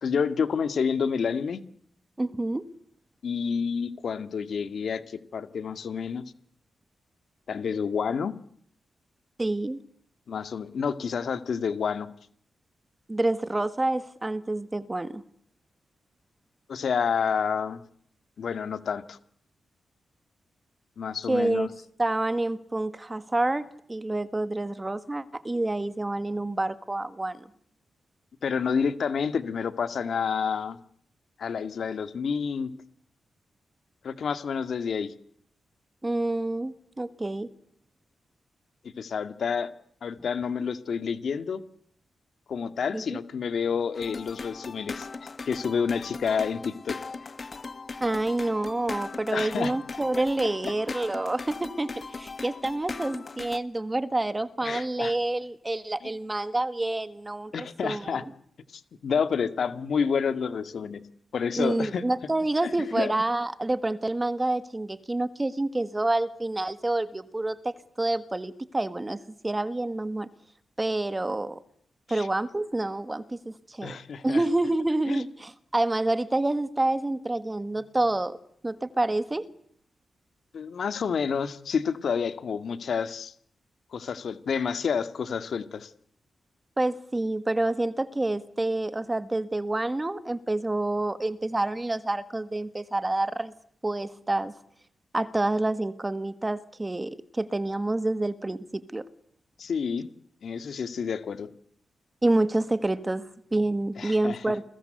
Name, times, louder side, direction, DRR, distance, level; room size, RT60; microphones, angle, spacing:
voice 1, 0.0-1.6 3.2-6.2 7.5-8.3 10.3-12.1 16.7-17.8 18.4-19.2 21.0-21.7 28.4-30.8 31.4-32.7 34.0-35.1 39.0-39.7 40.0-41.6 42.5-47.3 49.3-49.7 54.6-55.2 57.5-58.2 58.7-61.0 61.3-62.0 62.6-63.1 72.1-72.3 73.8-74.4 75.1-75.2 80.5-83.3 83.9-85.9 99.6-100.1 100.4-101.5 104.0-104.5, left 6 dB, 65° left, 11 dB, 2.1 m, -29 dB
voice 2, 2.2-2.7 9.4-9.8 13.1-15.2 21.3-21.7 22.0-27.4 36.0-37.5 42.9-43.0 48.0-58.2 61.6-69.2 69.4-70.3 70.8-71.6 72.1-74.0 74.2-78.4 78.6-79.5 86.8-93.5 93.8-94.5 95.1-99.0 102.2-104.6, right 2 dB, 15° right, 13 dB, 1.6 m, -28 dB
sound 1, 43.9-53.6, left 4 dB, 35° left, 1.4 m, -39 dB
30.0 x 21.5 x 8.0 m, 0.65 s
wide cardioid pair, 140°, 0 cm